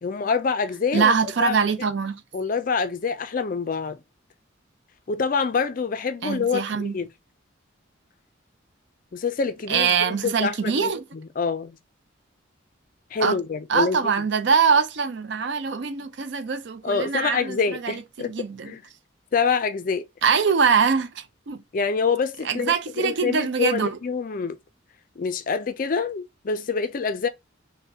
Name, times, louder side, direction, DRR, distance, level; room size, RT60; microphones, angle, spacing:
voice 1, 0.0-1.1 1.4-1.6 2.3-4.0 5.1-7.1 9.1-11.8 13.1-14.0 16.8-18.3 18.6-18.8 19.3-20.1 21.7-24.6 25.2-27.3, left 5 dB, 40° left, 0.4 m, -26 dB
voice 2, 0.9-2.2 6.2-6.9 9.7-11.0 13.2-13.4 13.7-18.7 20.2-21.6 22.4-24.0, right 6 dB, 60° right, 0.4 m, -23 dB
5.4 x 2.1 x 2.7 m
head